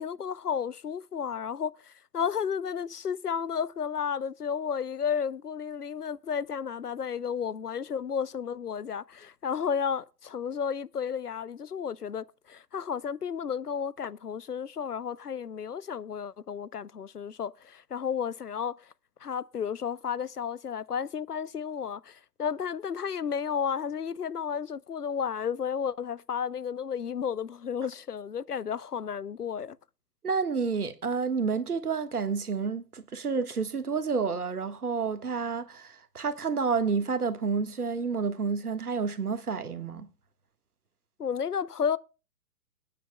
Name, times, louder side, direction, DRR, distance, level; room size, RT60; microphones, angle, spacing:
voice 1, 0.0-18.8 19.2-29.8 41.2-42.0, left 7 dB, 75° left, 0.7 m, -32 dB
voice 2, 30.2-40.1, right 5 dB, 65° right, 1.6 m, -29 dB
25.0 x 9.3 x 2.2 m
figure-of-eight pair, 130°, 48 cm